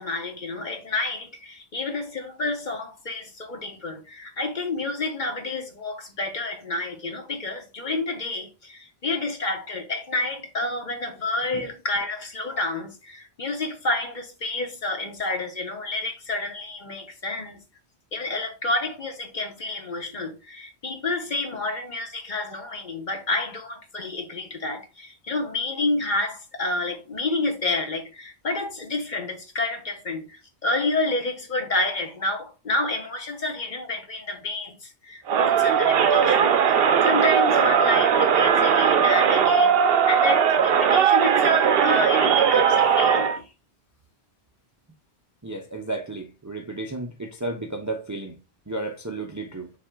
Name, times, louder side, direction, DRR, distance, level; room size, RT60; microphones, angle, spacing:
voice 1, 0.0-17.6 18.1-36.5 36.8-43.5, left 2 dB, 45° left, 1.2 m, -29 dB
Crowd, 35.3-43.4, right 7 dB, 65° right, 0.8 m, -19 dB
voice 2, 45.4-48.4 48.7-49.7, right 2 dB, 20° right, 0.5 m, -33 dB
6.0 x 3.7 x 2.3 m
omnidirectional pair, 1.1 m